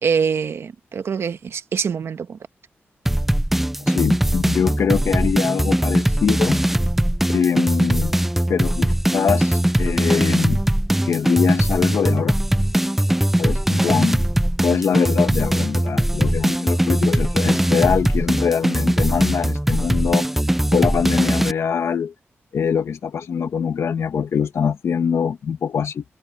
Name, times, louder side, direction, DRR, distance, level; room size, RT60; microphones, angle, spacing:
voice 1, 0.0-2.4 13.9-14.1, right 6 dB, 70° right, 1.1 m, -24 dB
sound 1, 3.1-21.5, right 1 dB, 5° right, 0.5 m, -20 dB
voice 2, 3.8-6.6 7.3-8.1 8.5-10.6 11.0-12.4 13.4-14.2 14.6-20.3 20.7-22.1 22.5-26.0, left 7 dB, 80° left, 1.4 m, -23 dB
wide cardioid pair, 140°, 5 cm